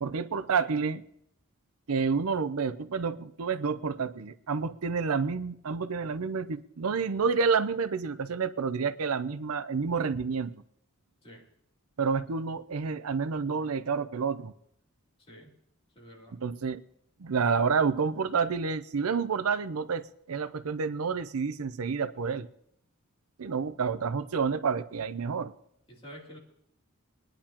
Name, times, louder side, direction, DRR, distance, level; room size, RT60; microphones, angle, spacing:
voice 1, 0.0-1.0 1.9-10.6 12.0-14.5 16.3-16.8 17.2-22.5 23.4-25.5, right 5 dB, 90° right, 0.6 m, -29 dB
voice 2, 15.9-16.4 25.9-26.4, equal, 25° left, 3.0 m, -48 dB
23.0 x 10.0 x 2.9 m
head